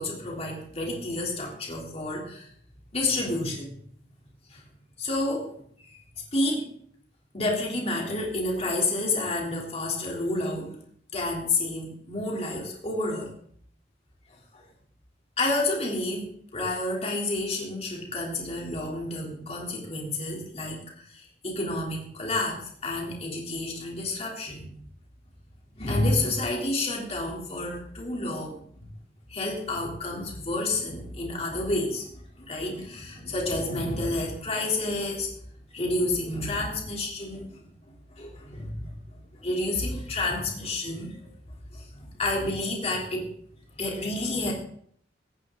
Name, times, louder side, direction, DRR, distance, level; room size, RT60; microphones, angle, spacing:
voice 1, 0.0-2.5 2.9-3.8 4.5-4.6 5.0-5.5 5.8-6.0 6.3-6.7 7.3-10.8 11.1-13.3 14.3-14.6 15.4-24.7 25.7-28.9 29.3-35.3 35.7-37.8 38.1-43.3 43.8-44.5, left 2 dB, 35° left, -1 dB, 3.4 m, -30 dB
17.5 x 15.5 x 3.9 m, 0.62 s
head